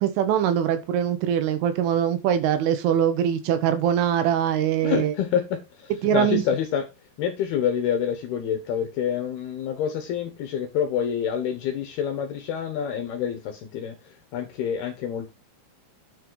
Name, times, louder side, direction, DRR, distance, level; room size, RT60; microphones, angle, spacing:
voice 1, 0.0-5.1 6.0-6.4, right 9 dB, 75° right, 9 dB, 3.6 m, -22 dB
voice 2, 4.8-6.8 7.2-13.9 14.3-15.3, left 8 dB, 70° left, 6 dB, 2.6 m, -27 dB
10.0 x 5.6 x 4.7 m, 0.25 s
omnidirectional pair, 5.8 m